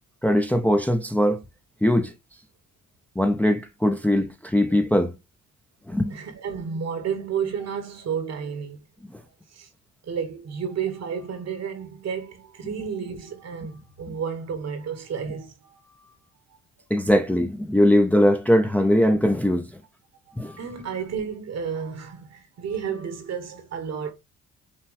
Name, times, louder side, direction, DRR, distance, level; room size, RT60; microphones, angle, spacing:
voice 1, 0.2-1.4 1.8-2.1 3.2-5.1 5.9-6.1 16.9-19.7 20.4-20.5, left 1 dB, 5° left, 0.5 m, -20 dB
voice 2, 6.1-8.9 9.5-9.7 10.0-16.1 20.3-24.1, right 7 dB, 60° right, 1.2 m, -32 dB
5.9 x 2.2 x 3.3 m
cardioid pair, 90°, 30 cm